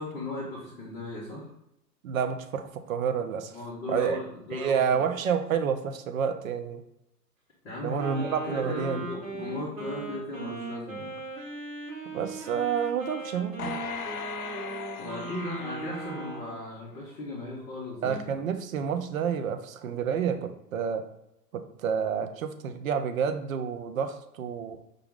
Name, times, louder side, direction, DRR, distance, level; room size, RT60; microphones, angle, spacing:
voice 1, 0.0-1.5 3.5-5.0 7.6-11.1 15.0-18.2, left 2 dB, 15° left, -7 dB, 0.6 m, -37 dB
voice 2, 2.0-3.6 3.9-4.2 4.5-6.8 7.8-9.1 12.1-13.8 18.0-21.0 21.5-24.8, right 7 dB, 55° right, 8 dB, 0.5 m, -29 dB
Wind instrument woodwind instrument, 8.0-16.6, right 3 dB, 70° right, 1.5 m, -39 dB
sound 1, 13.6-17.0 17.5-17.6, left 6 dB, 60° left, 0.5 m, -39 dB
5.0 x 2.2 x 3.6 m, 0.83 s
figure-of-eight pair, 120°, 50 cm